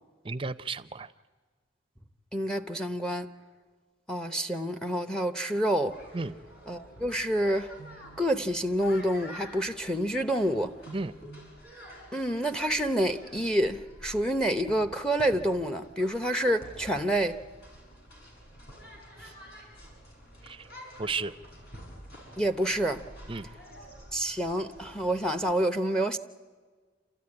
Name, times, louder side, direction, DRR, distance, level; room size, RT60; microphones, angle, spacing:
voice 1, 0.2-1.1 6.1-6.4 10.9-11.1 20.4-20.7 21.0-21.3 23.3-23.5, right 4 dB, 30° right, 0.6 m, -33 dB
voice 2, 2.3-3.3 4.1-6.0 6.7-7.7 8.2-10.7 12.1-17.4 22.4-23.0 24.1-26.2, right 1 dB, 5° left, 0.8 m, -28 dB
sound 1, 5.9-25.5, equal, 60° left, 7.2 m, -49 dB
28.5 x 14.0 x 9.8 m
head